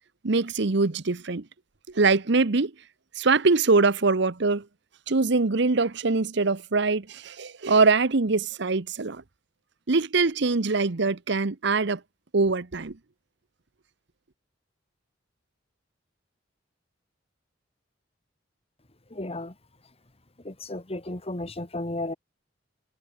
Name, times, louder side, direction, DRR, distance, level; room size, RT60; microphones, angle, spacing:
voice 1, 0.2-1.4 1.9-2.7 3.2-4.6 5.1-9.2 9.9-12.0 12.3-12.9, right 3 dB, 65° right, 0.9 m, -23 dB
voice 2, 19.2-19.5 20.5-22.1, left 2 dB, 30° left, 2.2 m, -33 dB
head